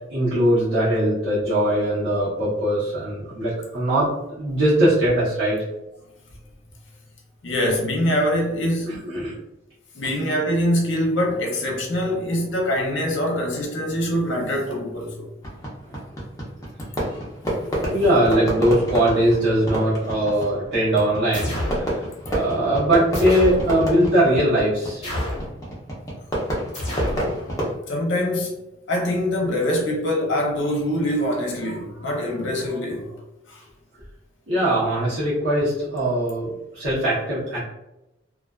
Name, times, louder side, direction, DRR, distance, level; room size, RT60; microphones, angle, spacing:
voice 1, 0.1-4.1 4.4-5.6 8.8-9.3 10.0-10.1 17.9-25.0 34.5-37.6, right 1 dB, 70° right, 0.9 m, -21 dB
voice 2, 7.4-9.0 9.9-15.3 22.3-22.4 27.9-28.6 28.9-33.1 33.5-33.6, equal, 65° left, 0.6 m, -24 dB
Fireworks, 15.4-27.7, equal, 15° left, 0.5 m, -29 dB
sound 1, 21.3-21.9 23.1-23.7 25.0-25.5 26.7-27.3, left 1 dB, 35° left, 1.0 m, -28 dB
2.4 x 2.3 x 2.3 m
head